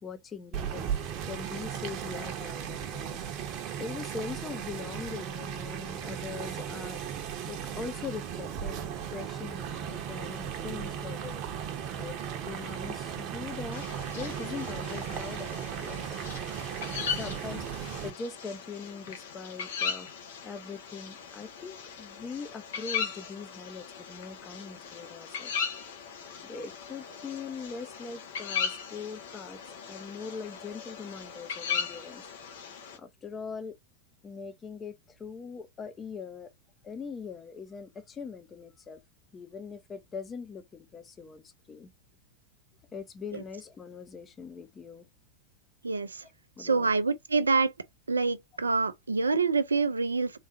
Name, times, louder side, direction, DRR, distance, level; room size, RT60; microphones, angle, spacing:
voice 1, 0.0-3.3 3.8-7.0 7.4-11.4 11.9-12.2 12.4-16.2 17.1-25.6 26.4-29.6 29.9-32.3 33.0-33.8 34.2-36.5 36.8-39.0 39.3-41.9 42.9-45.1 46.6-46.9, left 5 dB, 20° left, 0.8 m, -41 dB
sound 1, 0.5-18.1, right 8 dB, 35° right, 0.9 m, -36 dB
sound 2, 13.7-33.0, left 7 dB, 60° left, 1.3 m, -38 dB
voice 2, 45.8-46.3 46.6-47.7 48.1-50.4, right 4 dB, 75° right, 0.5 m, -26 dB
3.9 x 3.6 x 2.6 m
figure-of-eight pair, 90°, 0 cm